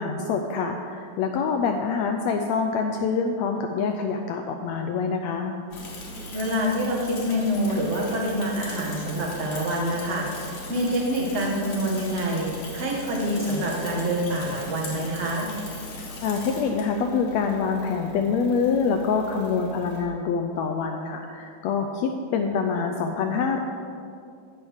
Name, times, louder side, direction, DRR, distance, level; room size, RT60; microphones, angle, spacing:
voice 1, 0.0-5.5 16.2-23.6, left 5 dB, 80° left, 4 dB, 1.5 m, -26 dB
Bicycle / Mechanisms, 5.7-20.0, left 1 dB, 65° left, 2.8 m, -39 dB
voice 2, 6.3-15.5, equal, 65° right, -2 dB, 0.6 m, -26 dB
16.0 x 6.2 x 3.5 m, 2.4 s
omnidirectional pair, 3.6 m